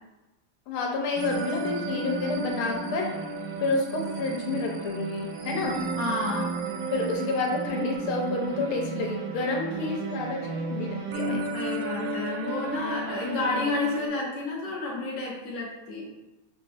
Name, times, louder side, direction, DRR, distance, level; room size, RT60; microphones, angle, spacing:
voice 1, 0.7-3.1 3.6-5.8 6.9-11.4, left 3 dB, 80° left, 1 dB, 1.6 m, -29 dB
sound 1, 1.2-14.1, right 3 dB, 75° right, 1.1 m, -33 dB
voice 2, 6.0-6.5 11.3-16.0, left 3 dB, 45° left, -5 dB, 1.0 m, -30 dB
5.6 x 2.3 x 2.6 m, 0.99 s
omnidirectional pair, 2.4 m